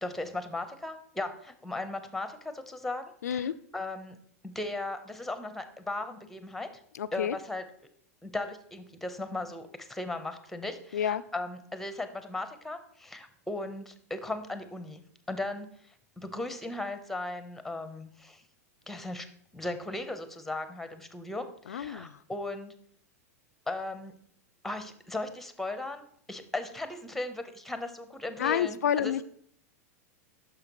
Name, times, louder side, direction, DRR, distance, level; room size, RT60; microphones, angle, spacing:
voice 1, 0.0-4.2 4.4-6.7 7.1-7.6 8.2-15.0 15.3-15.7 16.2-18.4 18.9-19.3 19.5-22.7 23.7-24.1 24.6-26.0 26.3-29.1, left 2 dB, 5° left, 9 dB, 0.9 m, -37 dB
voice 2, 3.2-3.5 6.9-7.4 10.9-11.2 21.7-22.2 28.4-29.2, left 9 dB, 85° left, 16 dB, 0.3 m, -29 dB
9.7 x 6.6 x 3.1 m, 0.63 s
hypercardioid pair, 110°, 9 cm